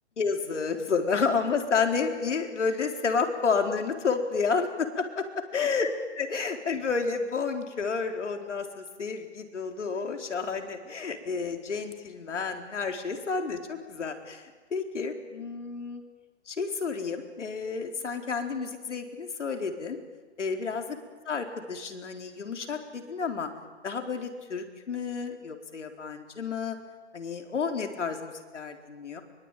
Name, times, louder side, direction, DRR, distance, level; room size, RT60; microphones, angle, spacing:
voice 1, 0.2-4.9 5.5-16.0 16.5-20.0 20.4-21.0 21.3-23.5 23.8-26.8 27.1-29.2, left 5 dB, 85° left, 4 dB, 4.3 m, -30 dB
24.0 x 23.0 x 9.3 m, 1.3 s
hypercardioid pair, 160°, 35 cm